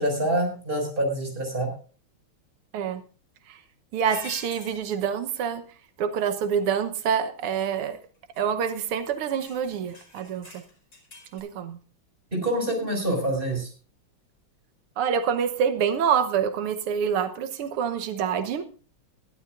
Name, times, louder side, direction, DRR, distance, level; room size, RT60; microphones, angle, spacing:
voice 1, 0.0-1.7 12.3-13.7, right 1 dB, 25° right, 6.0 m, -26 dB
voice 2, 3.9-5.6 6.0-8.0 8.4-10.6 11.3-11.8 15.0-18.7, right 7 dB, 90° right, 2.0 m, -26 dB
sound 1, 4.1-4.8 7.5-7.8 8.3-8.4 8.7-8.9 9.4-11.4, left 1 dB, 55° left, 6.1 m, -45 dB
21.5 x 12.5 x 2.5 m
omnidirectional pair, 2.4 m